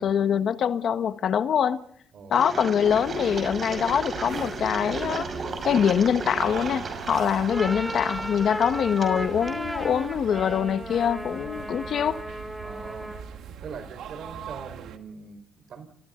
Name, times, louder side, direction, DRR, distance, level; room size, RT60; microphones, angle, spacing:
voice 1, 0.0-1.8 2.3-5.3 5.6-12.2, left 8 dB, 65° left, 1.5 m, -24 dB
voice 2, 2.1-2.7 12.6-13.2 13.6-15.9, right 5 dB, 65° right, 4.9 m, -42 dB
Engine, 2.3-10.1, right 3 dB, 40° right, 5.8 m, -35 dB
sound 1, 2.8-15.0, right 8 dB, 80° right, 2.0 m, -41 dB
sound 2, 7.4-13.4, right 1 dB, 5° right, 2.5 m, -35 dB
29.0 x 27.0 x 4.0 m
cardioid pair, 90°, 0 cm